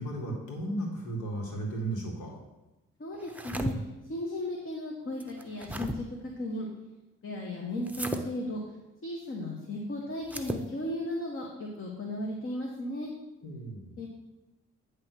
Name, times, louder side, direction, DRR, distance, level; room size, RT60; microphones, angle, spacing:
voice 1, 0.0-2.3 13.4-14.0, right 1 dB, 75° left, 1 dB, 2.0 m, -35 dB
voice 2, 3.0-6.7 7.2-8.6 9.0-13.1 14.0-14.1, left 1 dB, 45° left, 0 dB, 1.3 m, -35 dB
sound 1, 3.2-3.7 5.2-6.0 7.9-8.2 10.2-10.7, right 1 dB, 5° right, 0.7 m, -35 dB
9.5 x 3.2 x 6.2 m, 1.0 s
supercardioid pair, 70°, 30 cm